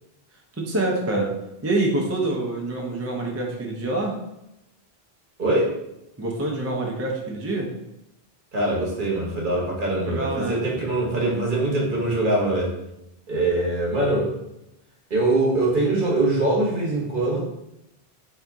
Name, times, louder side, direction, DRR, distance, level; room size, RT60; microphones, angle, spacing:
voice 1, 0.6-1.3 1.6-4.2 6.2-7.7 10.1-10.6, right 2 dB, 20° right, -1 dB, 0.4 m, -26 dB
voice 2, 5.4-5.7 8.5-12.7 13.3-14.3 15.1-17.4, right 2 dB, 55° right, -3 dB, 1.1 m, -23 dB
3.8 x 2.7 x 3.5 m, 0.87 s
omnidirectional pair, 1.1 m